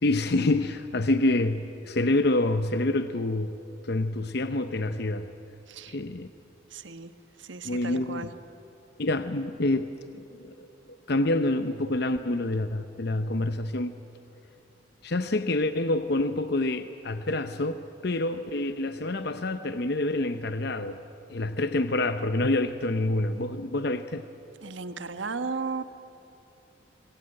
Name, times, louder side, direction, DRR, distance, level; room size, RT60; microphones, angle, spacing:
voice 1, 0.0-3.5 3.8-5.3 5.9-6.3 7.6-8.3 9.0-10.5 10.9-13.9 15.0-21.0 21.3-24.2, left 2 dB, 55° left, 10 dB, 0.8 m, -27 dB
voice 2, 5.7-6.0 6.7-7.1 7.4-8.3 24.6-25.8, right 4 dB, 75° right, 9 dB, 1.3 m, -35 dB
25.5 x 22.0 x 8.9 m, 2.9 s
head